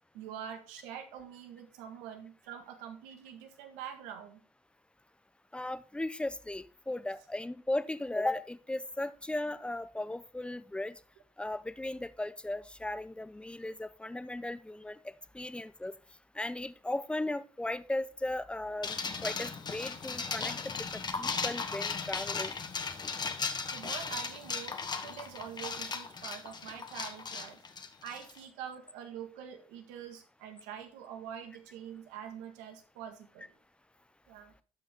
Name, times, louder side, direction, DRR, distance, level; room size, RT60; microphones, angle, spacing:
voice 1, 0.1-4.4 23.7-27.6 28.0-33.5 34.3-34.5, right 9 dB, 85° right, 6 dB, 1.5 m, -45 dB
voice 2, 5.5-11.0 11.4-15.9 16.3-19.0 19.2-22.6, left 1 dB, 10° left, 15 dB, 0.7 m, -36 dB
sound 1, 18.8-28.4, left 5 dB, 35° left, 1.2 m, -37 dB
12.0 x 5.4 x 3.5 m, 0.38 s
supercardioid pair, 75°, 13 cm